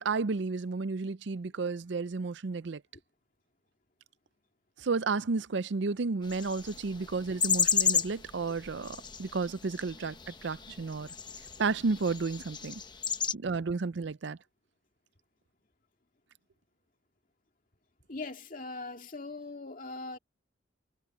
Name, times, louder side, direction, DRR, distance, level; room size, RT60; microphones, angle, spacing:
voice 1, 0.0-2.8 4.8-11.1 11.6-12.8 13.3-14.4, right 4 dB, 65° right, 0.5 m, -32 dB
sound 1, 6.3-13.3, left 7 dB, 25° left, 1.1 m, -33 dB
voice 2, 12.8-13.4 18.1-20.2, left 3 dB, 45° left, 2.3 m, -41 dB
head